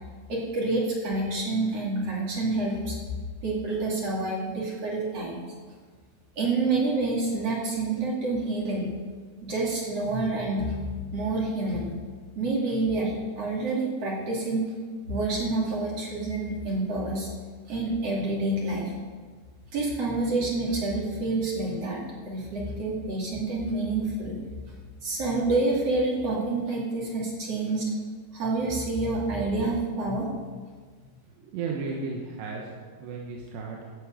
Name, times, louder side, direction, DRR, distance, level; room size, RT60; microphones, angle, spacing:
voice 1, 0.3-3.0 3.4-5.4 6.3-8.9 9.4-10.8 11.1-11.9 12.4-14.6 15.1-17.3 17.7-18.9 19.7-24.4 25.0-27.9 28.3-30.3, right 2 dB, 40° right, -3 dB, 3.2 m, -28 dB
voice 2, 31.4-32.7 33.0-33.8, right 4 dB, 80° right, -1 dB, 3.4 m, -34 dB
13.0 x 8.6 x 7.9 m, 1.6 s
omnidirectional pair, 4.9 m